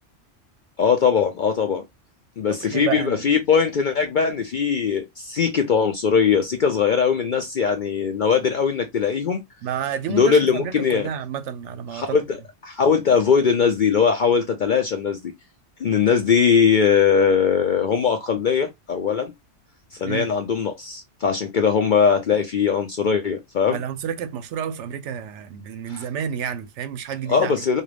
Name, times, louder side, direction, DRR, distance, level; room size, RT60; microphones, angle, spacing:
voice 1, 0.8-1.8 2.4-9.4 10.1-11.1 11.9-12.4 12.6-15.3 15.8-19.3 19.9-23.8 25.9-26.0 27.3-27.8, left 6 dB, 55° left, 0.5 m, -20 dB
voice 2, 2.5-3.3 9.6-12.2 20.0-20.3 23.7-27.5, right 8 dB, 70° right, 0.9 m, -30 dB
3.7 x 2.3 x 3.3 m
omnidirectional pair, 1.3 m